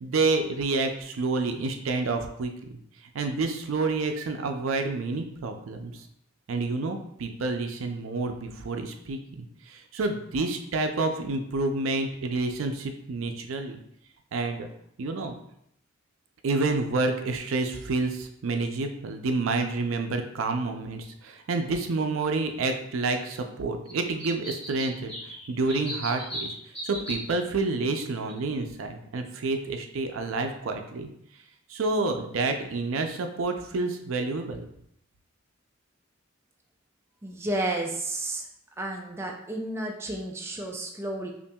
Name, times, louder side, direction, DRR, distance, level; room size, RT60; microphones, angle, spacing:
voice 1, 0.0-2.8 3.1-6.0 6.5-13.8 14.3-14.7 15.0-15.4 16.4-26.5 26.8-31.1 31.7-34.7, right 3 dB, 75° right, 5 dB, 0.4 m, -29 dB
sound 1, 23.9-24.0 24.2-27.3 28.3-28.4 28.6-28.7, equal, 5° left, 1.4 m, -37 dB
voice 2, 37.2-38.4 38.8-41.3, right 1 dB, 10° right, 1 dB, 0.3 m, -32 dB
5.5 x 2.5 x 2.3 m, 0.74 s
head